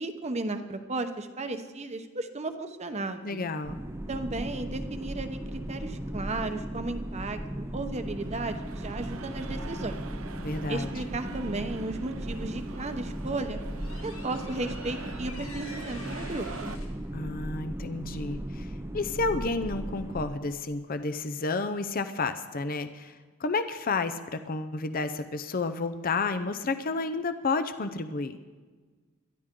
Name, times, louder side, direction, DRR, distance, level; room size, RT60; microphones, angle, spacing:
voice 1, 0.0-3.5 4.1-10.0 10.7-13.6 14.0-16.8, right 2 dB, 30° right, 8 dB, 1.0 m, -34 dB
voice 2, 3.2-3.8 10.4-10.9 17.1-28.3, left 3 dB, 40° left, 10 dB, 0.6 m, -31 dB
sound 1, 3.6-20.3, right 1 dB, 10° right, 0.6 m, -37 dB
sound 2, 7.8-16.8, right 5 dB, 70° right, 0.6 m, -46 dB
sound 3, 12.9-18.1, left 4 dB, 75° left, 2.5 m, -49 dB
22.0 x 12.5 x 3.8 m, 1.4 s
head